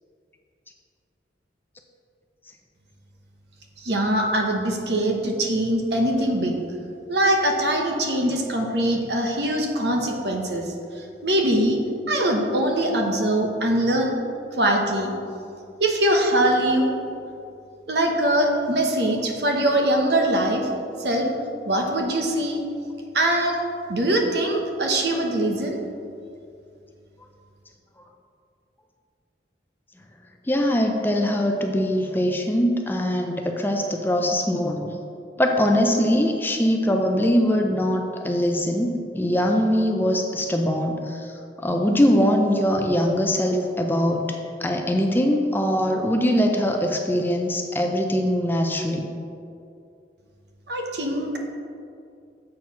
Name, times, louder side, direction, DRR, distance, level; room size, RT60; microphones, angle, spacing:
voice 1, 3.8-6.6 7.1-11.8 12.1-14.1 14.5-15.1 15.8-16.9 17.9-20.7 21.0-21.3 21.7-22.6 23.1-23.6 23.9-25.8 50.7-51.4, right 1 dB, 65° right, 1 dB, 1.0 m, -22 dB
voice 2, 30.5-35.0 35.4-49.1, equal, 10° left, 3 dB, 0.5 m, -22 dB
7.6 x 4.5 x 5.7 m, 2.5 s
head